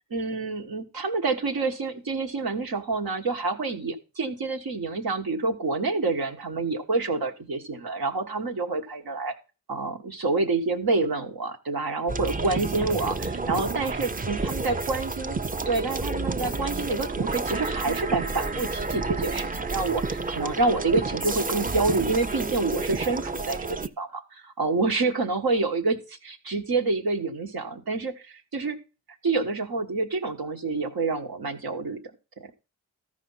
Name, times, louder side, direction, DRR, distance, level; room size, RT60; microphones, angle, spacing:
voice 1, 0.1-9.3 9.7-15.3 15.6-28.8 29.2-32.0, right 3 dB, 80° right, 4 dB, 1.3 m, -28 dB
sound 1, 12.1-23.9, right 3 dB, 25° right, 0.6 m, -30 dB
13.5 x 5.0 x 5.5 m, 0.32 s
cardioid pair, 50°, 36 cm